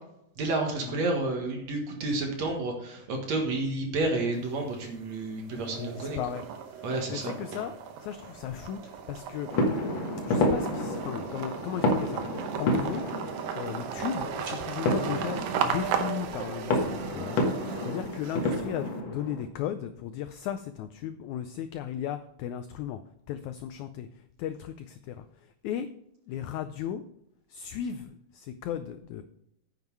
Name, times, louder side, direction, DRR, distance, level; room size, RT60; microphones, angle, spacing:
voice 1, 0.4-6.2 6.8-7.3, right 2 dB, 55° right, 2 dB, 2.6 m, -30 dB
sound 1, 4.3-5.0 5.4-18.9, right 8 dB, 80° right, 2.6 m, -36 dB
voice 2, 5.8-6.4 6.7-7.7 8.0-9.5 10.3-13.0 13.5-23.0 23.3-24.1 24.4-25.2 25.6-25.9 26.3-27.0 27.5-29.2, left 9 dB, 90° left, 10 dB, 1.6 m, -36 dB
sound 2, 9.5-19.4, left 1 dB, 55° left, 1.4 m, -30 dB
9.5 x 7.3 x 4.6 m, 0.79 s
omnidirectional pair, 4.0 m